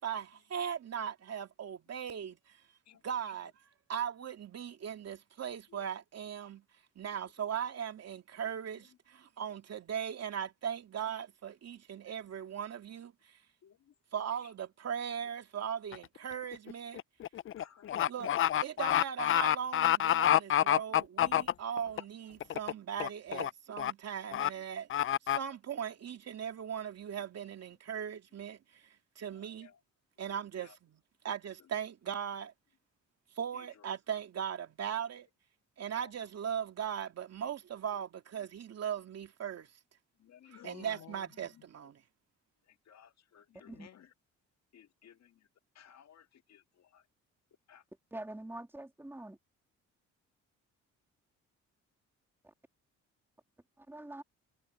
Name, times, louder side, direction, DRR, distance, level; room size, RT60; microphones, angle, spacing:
voice 1, 0.0-2.6 3.0-3.5 3.9-6.6 7.0-13.4 14.1-17.0 18.1-18.3 18.6-29.7 30.2-32.5 33.4-35.3 35.8-39.7 40.5-42.0, right 8 dB, 55° right, 2.6 m, -39 dB
sound 1, 15.9-16.2 16.5-22.0 22.4-22.7 23.0-23.5 23.8-23.9 24.3-24.5 24.9-25.4, left 11 dB, 45° left, 0.5 m, -28 dB
voice 2, 17.6-18.1 18.4-18.5 29.3-29.8 30.3-30.7 33.5-33.6 35.9-36.1 40.2-41.5 42.9-44.1 44.7-45.3 45.7-47.0 47.7-47.8, left 9 dB, 60° left, 1.8 m, -57 dB
voice 3, 48.1-49.4 52.4-52.5 53.8-54.2, right 1 dB, 10° right, 2.8 m, -45 dB
cardioid pair, 90°, 30 cm